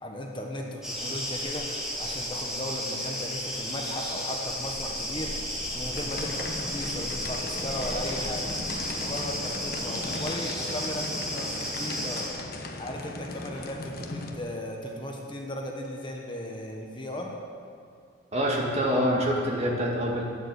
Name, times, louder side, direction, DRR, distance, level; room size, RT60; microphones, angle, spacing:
voice 1, 0.0-8.5 9.0-12.4 12.8-17.3, left 1 dB, 25° left, 1 dB, 1.2 m, -36 dB
sound 1, 0.8-12.3, equal, 5° right, 3.0 m, -33 dB
sound 2, 5.9-14.4, left 2 dB, 45° left, 1.1 m, -38 dB
voice 2, 18.3-20.2, equal, 30° right, -1 dB, 2.0 m, -25 dB
12.5 x 9.7 x 8.3 m, 2.3 s
head